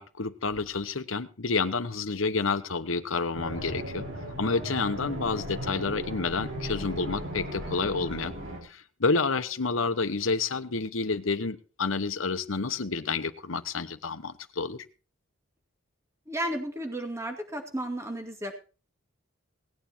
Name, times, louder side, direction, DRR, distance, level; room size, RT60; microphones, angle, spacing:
voice 1, 0.0-4.0 4.4-8.3 8.6-14.8, left 4 dB, 75° left, 11 dB, 1.1 m, -29 dB
sound 1, 3.3-8.6, equal, 70° right, 6.1 m, -36 dB
voice 2, 16.3-18.6, right 1 dB, 15° right, 4 dB, 2.2 m, -33 dB
18.0 x 9.4 x 4.4 m, 0.35 s
head